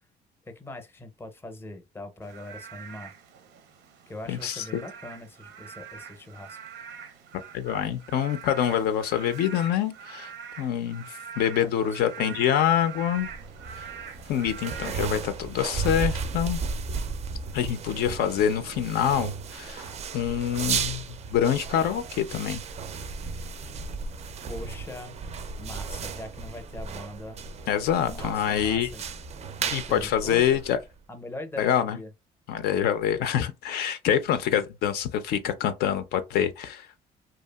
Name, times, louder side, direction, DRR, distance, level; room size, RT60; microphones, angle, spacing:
voice 1, 0.5-3.1 4.1-6.6 11.6-11.7 12.2-12.3 24.5-25.2 25.6-27.4 28.1-29.0 29.6-30.6 31.1-32.1, left 2 dB, 15° left, 0.5 m, -41 dB
Frog / Rain, 2.2-15.7, right 7 dB, 85° right, 0.6 m, -44 dB
voice 2, 4.3-4.8 7.5-13.3 13.8-13.9 14.3-16.6 17.5-22.6 27.7-28.9 29.7-30.8 31.6-32.0 32.5-36.9, left 9 dB, 70° left, 0.4 m, -26 dB
sound 1, 13.1-31.0, right 5 dB, 40° right, 0.4 m, -35 dB
2.8 x 2.3 x 2.2 m
cardioid pair, 110°, 17 cm